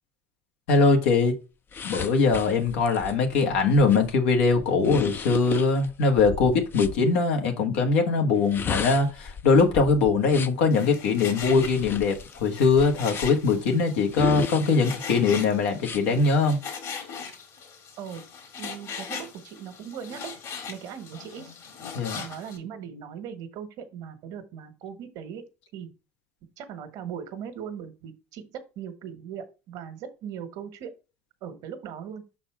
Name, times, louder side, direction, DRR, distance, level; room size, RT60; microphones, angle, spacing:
voice 1, 0.7-1.3 1.8-16.6 21.9-22.2, left 4 dB, 85° left, 1.4 m, -22 dB
sound 1, 1.7-7.0 8.3-10.7 11.4-13.5 14.1-15.2 15.8-16.0, left 6 dB, 35° left, 0.5 m, -35 dB
Frying (food), 10.7-22.6, left 6 dB, 55° left, 2.1 m, -40 dB
voice 2, 18.6-20.3 20.7-21.6 22.2-25.4 25.7-25.9 26.6-30.9 31.4-32.2, right 8 dB, 70° right, 1.3 m, -39 dB
5.8 x 4.1 x 4.6 m
supercardioid pair, 85°, 7 cm